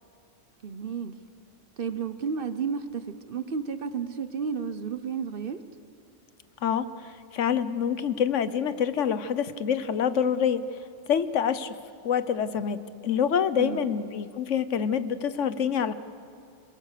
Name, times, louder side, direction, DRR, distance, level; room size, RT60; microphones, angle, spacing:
voice 1, 0.6-1.2 1.8-5.6 13.6-13.9, right 6 dB, 50° right, 11 dB, 1.0 m, -32 dB
voice 2, 6.6-10.6 11.1-11.8 12.0-15.9, left 8 dB, 75° left, 13 dB, 1.2 m, -26 dB
28.0 x 22.0 x 6.7 m, 2.4 s
omnidirectional pair, 1.3 m